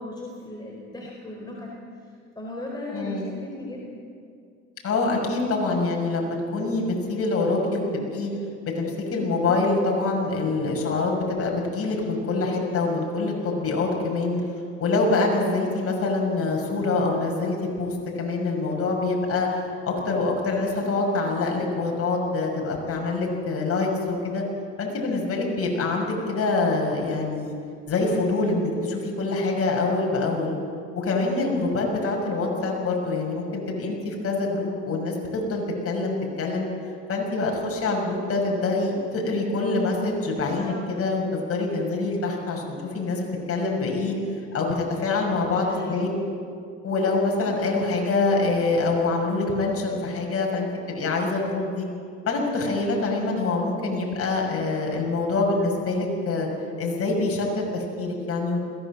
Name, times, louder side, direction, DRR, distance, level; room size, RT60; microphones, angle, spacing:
voice 1, 0.0-1.7 2.1-3.9 40.4-40.8 45.5-46.1, left 1 dB, 15° left, -3 dB, 4.5 m, -37 dB
voice 2, 2.9-3.3 4.8-7.8 8.1-8.3 8.6-14.4 14.8-19.5 19.8-24.4 24.8-27.5 27.9-30.5 30.9-36.7 37.1-44.1 44.5-46.1 46.8-51.9 52.3-56.5 56.8-58.7, left 3 dB, 50° left, 0 dB, 6.4 m, -25 dB
21.5 x 16.5 x 7.5 m, 2.3 s
supercardioid pair, 80°, 29 cm